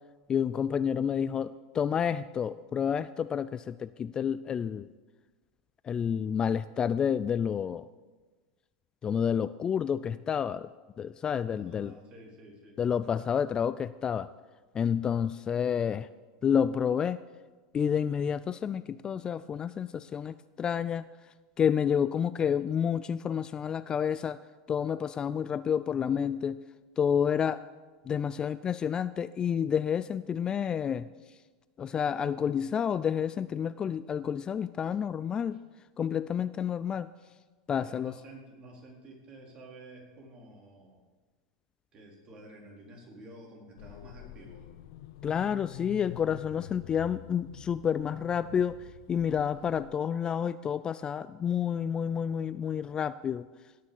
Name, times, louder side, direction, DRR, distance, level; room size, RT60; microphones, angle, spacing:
voice 1, 0.3-4.9 5.8-7.9 9.0-10.7 11.0-11.9 12.8-14.3 14.7-16.1 16.4-17.2 17.7-21.0 21.6-24.4 24.7-26.6 27.0-27.6 28.1-31.1 31.8-35.6 36.0-37.1 37.7-38.1 45.2-53.4, left 8 dB, 25° left, 15 dB, 0.3 m, -29 dB
voice 2, 11.5-12.8 35.5-35.6 37.8-41.0 41.9-44.7, right 1 dB, 35° right, -2 dB, 4.2 m, -50 dB
sound 1, 43.8-50.0, left 13 dB, 70° left, 0.6 m, -47 dB
17.5 x 6.6 x 7.2 m, 1.3 s
supercardioid pair, 115°, 3 cm